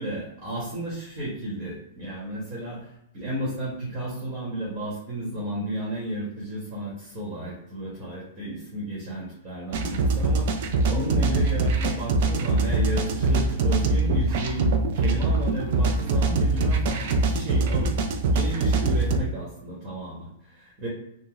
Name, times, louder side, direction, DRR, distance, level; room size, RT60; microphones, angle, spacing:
voice 1, 0.0-14.6 14.9-17.9 18.3-20.9, right 1 dB, 30° right, -6 dB, 1.2 m, -33 dB
sound 1, 9.7-19.2, right 2 dB, 55° right, 0.5 m, -23 dB
3.5 x 2.1 x 3.0 m, 0.79 s
hypercardioid pair, 145°, 0 cm